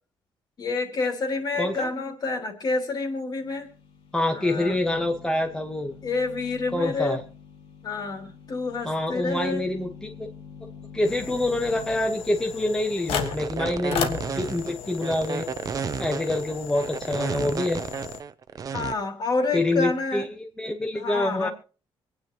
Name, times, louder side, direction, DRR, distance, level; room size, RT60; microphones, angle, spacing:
voice 1, 0.6-3.7 4.3-4.8 6.0-7.2 7.8-9.6 18.7-20.3 20.9-21.5, left 3 dB, 45° left, 4 dB, 3.1 m, -28 dB
voice 2, 1.6-1.9 4.1-5.9 6.7-7.2 8.8-10.3 10.9-15.5 16.0-17.8 19.5-21.5, left 1 dB, 5° left, 2 dB, 1.2 m, -26 dB
sound 1, 3.4-12.0, left 6 dB, 65° left, 2.5 m, -46 dB
sound 2, 11.0-18.2, left 7 dB, 85° left, 1.6 m, -35 dB
sound 3, 13.1-18.9, right 6 dB, 40° right, 0.7 m, -32 dB
26.0 x 9.5 x 3.0 m, 0.37 s
cardioid pair, 150°, 10 cm